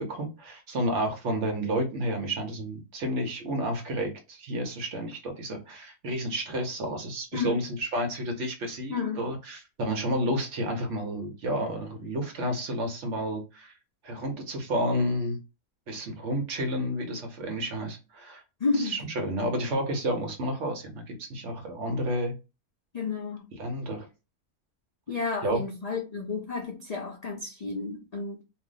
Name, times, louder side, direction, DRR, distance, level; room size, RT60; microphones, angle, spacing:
voice 1, 0.0-13.7 14.0-15.4 15.9-18.4 18.8-22.3 23.6-24.1 25.4-25.6, equal, 60° right, 1.0 m, -31 dB
voice 2, 7.3-7.6 8.9-9.3 18.6-19.0 22.9-23.5 25.1-28.4, left 4 dB, 80° left, 0.3 m, -31 dB
2.7 x 2.1 x 3.7 m
omnidirectional pair, 1.6 m